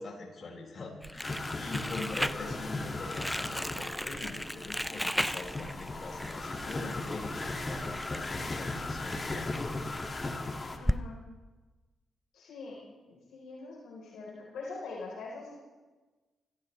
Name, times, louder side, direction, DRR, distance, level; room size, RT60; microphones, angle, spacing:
voice 1, 0.0-9.5, left 3 dB, 55° left, -1 dB, 5.7 m, -44 dB
Crumpling crinkling, 1.0-11.0, equal, 5° left, 0.6 m, -37 dB
sound 1, 1.2-10.8, left 2 dB, 35° left, 2.2 m, -37 dB
voice 2, 10.8-11.2 12.3-12.8 13.1-15.5, left 3 dB, 85° left, -4 dB, 4.0 m, -43 dB
24.5 x 15.0 x 3.3 m, 1.3 s
supercardioid pair, 60°, 0 cm